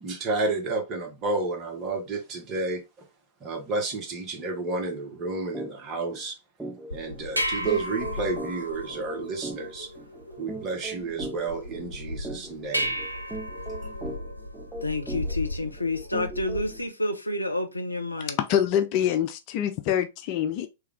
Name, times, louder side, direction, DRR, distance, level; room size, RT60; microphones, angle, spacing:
voice 1, 0.0-2.8 3.4-6.4 6.9-9.9 10.4-13.0, right 3 dB, 30° right, 1.0 m, -31 dB
sound 1, 5.5-5.7 6.1-6.2 6.6-16.8, right 2 dB, 5° right, 0.6 m, -39 dB
sound 2, 6.9-16.9, equal, 90° right, 0.4 m, -34 dB
voice 2, 14.8-18.4, left 2 dB, 85° left, 0.6 m, -29 dB
voice 3, 18.4-20.7, left 10 dB, 40° left, 0.4 m, -25 dB
3.3 x 2.3 x 3.5 m
figure-of-eight pair, 100°, 0 cm